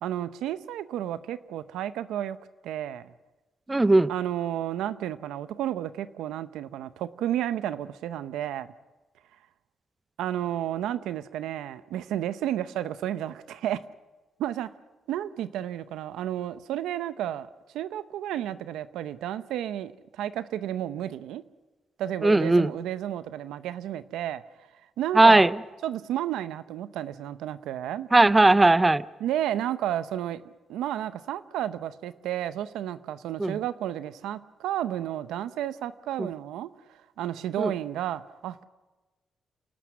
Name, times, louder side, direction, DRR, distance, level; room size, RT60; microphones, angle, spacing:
voice 1, 0.0-2.4 2.6-3.1 4.1-8.7 10.2-13.8 14.4-14.7 15.1-17.5 17.7-21.4 22.0-24.4 25.0-25.5 25.8-28.1 29.2-30.4 30.7-38.7, right 11 dB, 90° right, 14 dB, 0.7 m, -32 dB
voice 2, 3.7-4.1 22.2-22.7 25.1-25.6 28.1-29.0 33.4-33.6 36.2-36.3 37.6-37.7, right 2 dB, 20° right, 17 dB, 0.6 m, -18 dB
28.5 x 12.0 x 9.4 m, 1.2 s
cardioid pair, 65°, 0 cm